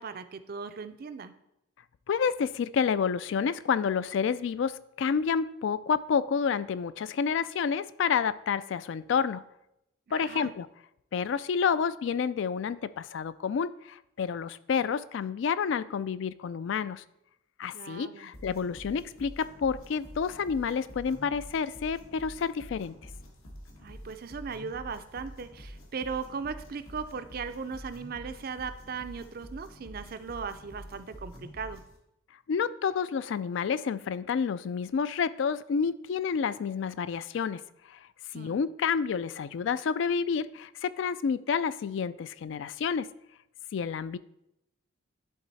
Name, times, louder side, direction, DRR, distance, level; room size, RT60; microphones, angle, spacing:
voice 1, 0.0-1.3 10.1-10.5 17.7-18.3 23.8-31.8 38.3-38.6, right 5 dB, 45° right, 11 dB, 0.4 m, -38 dB
voice 2, 2.1-4.7 5.0-9.4 10.1-10.7 11.1-17.0 17.6-22.9 32.5-37.6 38.3-43.1 43.7-44.2, left 6 dB, 60° left, 16 dB, 0.3 m, -29 dB
sound 1, 18.3-32.0, equal, 80° left, 1.6 m, -47 dB
11.0 x 3.8 x 4.1 m, 0.83 s
head